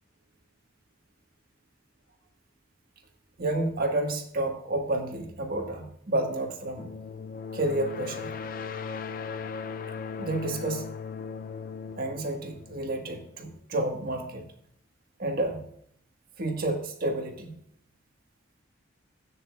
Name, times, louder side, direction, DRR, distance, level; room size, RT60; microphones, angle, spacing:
voice 1, 3.4-6.9 7.5-8.3 10.2-10.9 12.0-14.4 15.2-15.6 16.4-17.6, right 2 dB, 50° right, 3 dB, 1.5 m, -30 dB
sound 1, 6.8-13.4, left 5 dB, 45° left, 0.4 m, -38 dB
14.0 x 9.0 x 2.4 m, 0.69 s
head